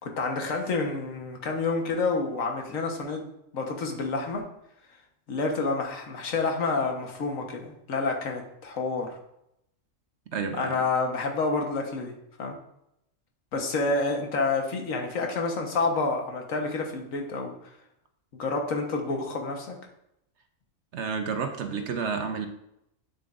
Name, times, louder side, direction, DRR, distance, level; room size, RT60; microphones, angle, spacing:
voice 1, 0.0-3.2 3.5-4.4 5.3-9.2 10.5-12.6 13.5-17.6 18.3-19.8, left 3 dB, 85° left, 2 dB, 1.6 m, -29 dB
voice 2, 10.3-10.8 20.9-22.5, right 5 dB, 65° right, 6 dB, 1.0 m, -30 dB
8.4 x 7.3 x 2.5 m, 0.80 s
omnidirectional pair, 1.4 m